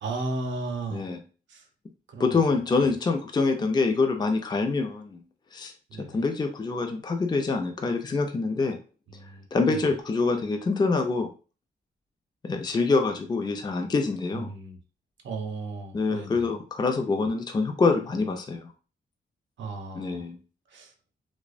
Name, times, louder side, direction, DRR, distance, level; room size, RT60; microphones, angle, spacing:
voice 1, 0.0-1.0 1.5-1.7 2.1-2.9 5.9-6.2 9.1-9.9 14.3-14.8 15.2-16.5 19.6-20.3 20.7-20.9, right 3 dB, 80° right, 3 dB, 0.6 m, -35 dB
voice 2, 2.2-5.2 5.5-5.7 6.0-8.8 9.5-11.3 12.4-14.5 15.9-18.7 20.0-20.4, left 4 dB, 20° left, 4 dB, 0.4 m, -25 dB
2.6 x 2.1 x 2.4 m, 0.36 s
cardioid pair, 90°, 19 cm